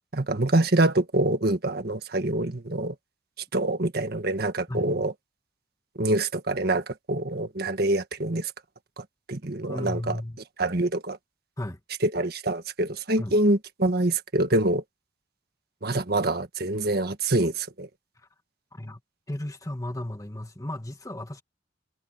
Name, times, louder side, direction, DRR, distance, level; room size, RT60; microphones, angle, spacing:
voice 1, 0.1-2.9 3.5-5.1 6.0-8.5 9.3-10.2 10.6-11.2 12.0-14.8 15.8-17.9, right 2 dB, 55° right, 1.6 m, -25 dB
voice 2, 9.7-10.4 11.6-11.8 13.2-13.4 18.7-19.0 19.3-21.4, left 1 dB, 20° left, 1.7 m, -34 dB
head